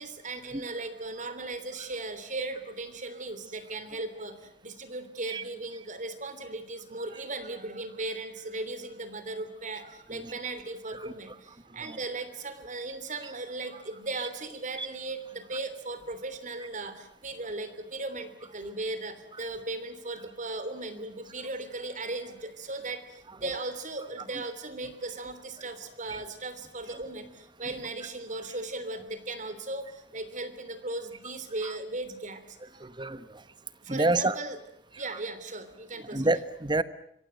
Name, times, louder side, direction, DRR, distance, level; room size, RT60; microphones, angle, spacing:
voice 1, 0.0-32.4 32.7-32.8 33.8-34.6 35.0-36.4, right 2 dB, 45° right, 12 dB, 3.3 m, -37 dB
voice 2, 32.8-33.2 33.9-34.4 36.1-36.8, right 2 dB, 25° right, 13 dB, 1.2 m, -27 dB
26.0 x 24.0 x 8.1 m, 0.71 s
head